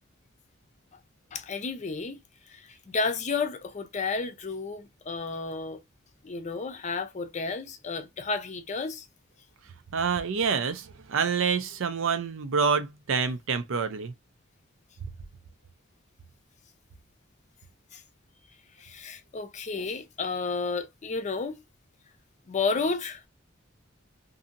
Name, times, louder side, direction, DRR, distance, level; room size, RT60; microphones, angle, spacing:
voice 1, 1.3-2.2 2.5-2.6 2.9-5.8 6.2-9.1 17.9-18.0 18.8-21.6 22.5-23.2, left 4 dB, 35° left, 0.5 m, -31 dB
voice 2, 9.9-14.1, right 5 dB, 75° right, 0.5 m, -27 dB
2.7 x 2.7 x 2.5 m
head